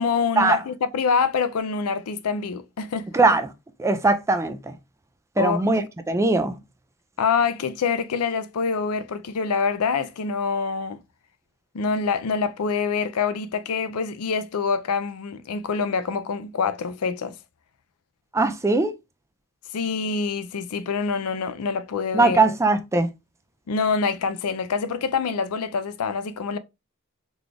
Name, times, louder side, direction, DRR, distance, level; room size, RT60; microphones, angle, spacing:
voice 1, 0.0-3.1 5.4-5.7 7.2-11.0 11.7-17.4 19.7-22.4 23.7-26.6, left 5 dB, 80° left, 0.5 m, -25 dB
voice 2, 3.1-3.5 3.8-4.7 5.4-6.6 18.3-18.9 22.1-23.1, right 3 dB, 15° right, 0.4 m, -20 dB
3.9 x 2.4 x 3.2 m
head